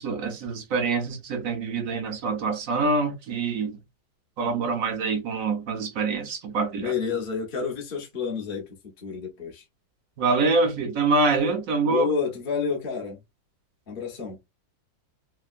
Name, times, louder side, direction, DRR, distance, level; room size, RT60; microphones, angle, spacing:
voice 1, 0.0-3.7 4.4-6.9 10.2-12.1, right 3 dB, 60° right, 0.9 m, -25 dB
voice 2, 6.8-8.6 9.0-9.6 11.9-13.2 13.9-14.4, left 6 dB, 40° left, 0.8 m, -29 dB
3.4 x 2.2 x 2.5 m
omnidirectional pair, 2.0 m